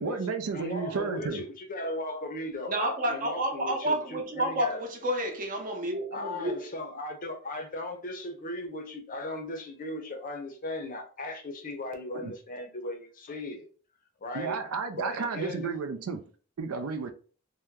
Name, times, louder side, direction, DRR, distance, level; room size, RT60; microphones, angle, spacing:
voice 1, 0.0-1.5 12.1-12.3 14.3-16.2 16.6-17.1, right 5 dB, 75° right, 0.4 m, -32 dB
voice 2, 0.5-4.8 6.1-13.7 14.2-14.6 14.9-15.7, left 1 dB, 40° left, 0.6 m, -37 dB
voice 3, 2.7-6.6, right 1 dB, 40° right, 0.7 m, -30 dB
2.8 x 2.1 x 3.5 m
head